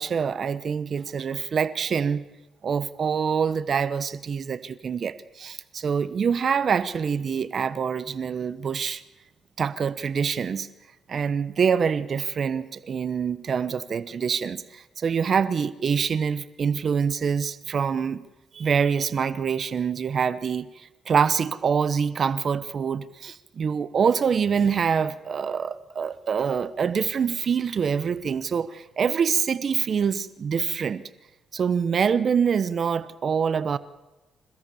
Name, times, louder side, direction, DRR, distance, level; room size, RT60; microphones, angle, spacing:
voice 1, 0.0-2.3 2.6-9.0 9.6-10.7 11.1-18.2 18.5-20.7 21.1-31.0 31.5-33.8, right 6 dB, 50° right, 0.9 m, -25 dB
27.0 x 17.0 x 7.0 m
cardioid pair, 90°, 0 cm